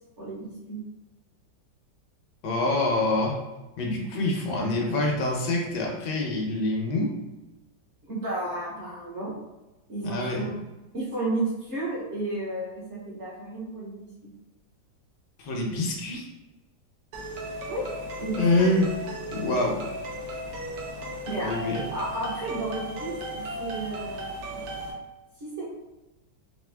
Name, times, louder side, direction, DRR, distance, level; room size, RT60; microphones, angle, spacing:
voice 1, 0.2-0.8 8.0-9.3 9.9-10.6 10.9-14.3 17.7-17.8 18.2-18.7 21.3-24.5 25.4-25.6, right 2 dB, 45° right, -6 dB, 1.1 m, -33 dB
voice 2, 2.4-3.4 3.8-7.1 10.0-10.5 15.4-16.3 18.4-19.0 19.3-19.9 21.4-21.8, left 2 dB, 70° left, 0 dB, 1.3 m, -26 dB
sound 1, 17.1-24.9, right 1 dB, 70° right, 1.4 m, -36 dB
4.3 x 2.7 x 3.3 m, 1.1 s
omnidirectional pair, 2.0 m